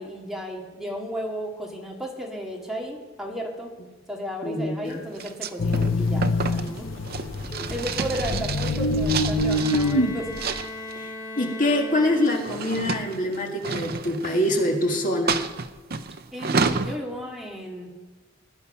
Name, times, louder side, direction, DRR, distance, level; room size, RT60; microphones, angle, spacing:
voice 1, 0.0-3.7 4.1-6.9 7.4-10.3 16.3-17.9, equal, ahead, -2 dB, 2.0 m, -34 dB
voice 2, 4.4-5.0 11.0-15.5, left 1 dB, 40° left, 1 dB, 2.0 m, -25 dB
sound 1, 5.2-10.0 10.4-11.0 12.0-14.8 15.3-17.0, right 4 dB, 50° right, 0.6 m, -30 dB
sound 2, 5.6-10.6, left 2 dB, 75° left, 0.8 m, -25 dB
Bowed string instrument, 9.2-12.9, left 2 dB, 20° left, 6.2 m, -38 dB
19.0 x 9.9 x 5.6 m, 1.3 s
head